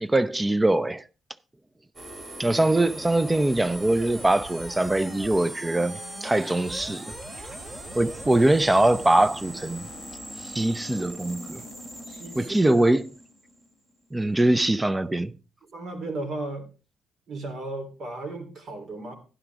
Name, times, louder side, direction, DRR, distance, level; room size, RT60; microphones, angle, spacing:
voice 1, 0.0-1.0 2.4-7.2 7.9-9.9 10.4-11.6 12.4-13.1 14.1-15.3, right 1 dB, 15° right, 0.6 m, -22 dB
sound 1, 1.9-13.9, right 1 dB, 30° right, 2.7 m, -40 dB
voice 2, 12.1-12.8 15.7-16.7 17.3-19.2, right 2 dB, 60° right, 3.4 m, -35 dB
11.5 x 11.0 x 3.5 m
cardioid pair, 90°, 0 cm